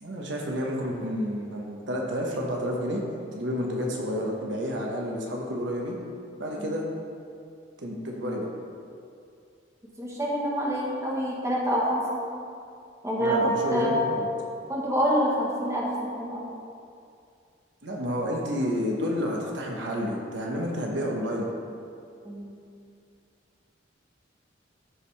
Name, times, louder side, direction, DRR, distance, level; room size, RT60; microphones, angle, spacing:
voice 1, 0.0-3.0 3.3-6.0 6.4-6.8 7.8-8.5 13.2-14.3 17.8-21.5, equal, 70° right, -1 dB, 1.1 m, -30 dB
voice 2, 10.0-12.2 13.0-14.0 14.7-16.4 22.2-22.5, equal, 15° right, -4 dB, 1.4 m, -26 dB
14.0 x 5.0 x 3.4 m, 2.4 s
head